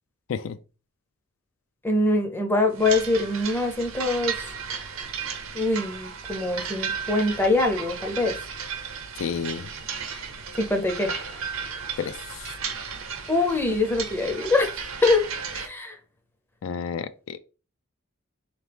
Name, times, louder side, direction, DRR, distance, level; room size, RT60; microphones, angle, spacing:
voice 1, 1.8-4.5 5.5-8.4 10.6-11.1 13.3-14.7 15.0-15.3 15.5-16.0, left 2 dB, 10° left, 0.5 m, -23 dB
sound 1, 2.7-15.7, right 6 dB, 75° right, 0.8 m, -34 dB
voice 2, 9.1-9.7 12.0-12.6 16.6-17.4, left 6 dB, 75° left, 0.3 m, -31 dB
3.9 x 2.9 x 3.4 m
head